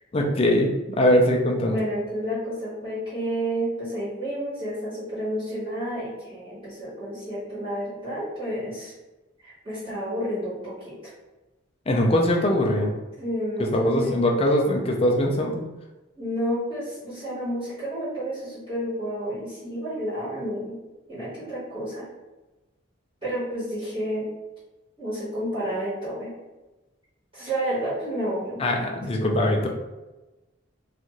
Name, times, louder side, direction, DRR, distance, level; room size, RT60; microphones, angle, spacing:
voice 1, 0.1-1.8 11.9-12.9 13.6-15.6 28.6-29.7, left 1 dB, 30° left, 1 dB, 0.4 m, -22 dB
voice 2, 1.7-8.9 9.4-11.1 13.2-14.2 16.2-20.8 21.1-22.1 23.2-24.3 25.0-26.3 27.3-28.7, equal, 25° right, -12 dB, 1.3 m, -30 dB
2.5 x 2.4 x 3.0 m, 1.1 s
head